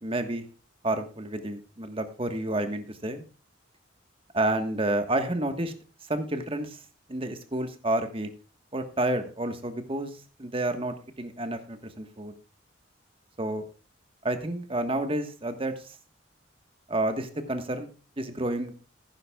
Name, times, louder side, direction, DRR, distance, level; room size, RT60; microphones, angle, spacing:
voice 1, 0.0-0.4 0.8-3.2 4.3-5.7 6.1-6.8 7.1-8.3 8.7-10.1 10.4-12.3 13.4-13.6 14.2-15.7 16.9-17.9 18.2-18.7, right 1 dB, 30° right, 8 dB, 1.4 m, -30 dB
16.0 x 9.7 x 2.3 m, 0.37 s
head